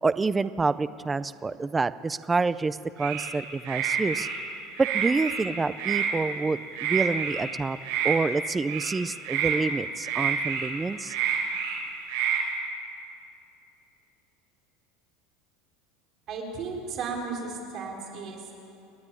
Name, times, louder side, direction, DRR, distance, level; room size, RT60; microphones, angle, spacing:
voice 1, 0.0-4.3 4.8-7.8 8.0-11.1, right 4 dB, 10° right, 14 dB, 0.4 m, -27 dB
sound 1, 3.0-3.3 3.6-4.4 4.8-5.4 5.8-6.1 6.7-7.4 7.8-8.1 8.6-9.0 9.2-9.6 10.0-10.7 11.0-11.8 12.1-12.4, right 8 dB, 75° right, 6.2 m, -28 dB
voice 2, 16.3-18.5, right 4 dB, 35° right, 0 dB, 3.8 m, -34 dB
29.5 x 10.5 x 9.8 m, 2.8 s
cardioid pair, 175°, 0 cm